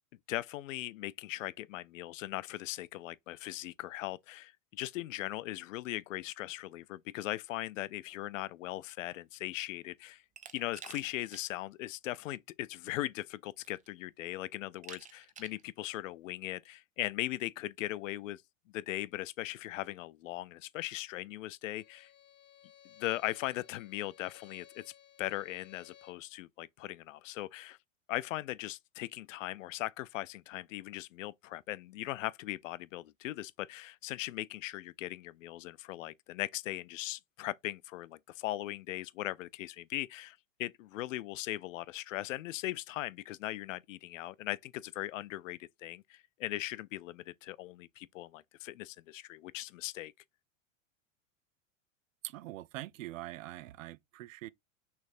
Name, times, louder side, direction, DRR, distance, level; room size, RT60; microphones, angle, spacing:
voice 1, 0.3-10.2 10.5-18.4 18.7-22.1 23.0-24.8 25.2-27.8 28.1-50.1, left 16 dB, 70° left, 0.5 m, -39 dB
Glass, 10.4-11.5 11.9-12.0 13.1-13.2 13.6-14.1 14.8-15.6, right 7 dB, 20° right, 0.7 m, -50 dB
Bowed string instrument, 21.7-26.3, left 11 dB, 25° left, 1.1 m, -59 dB
voice 2, 52.2-54.5, right 16 dB, 70° right, 0.6 m, -43 dB
6.3 x 3.3 x 2.5 m
hypercardioid pair, 95°, 41 cm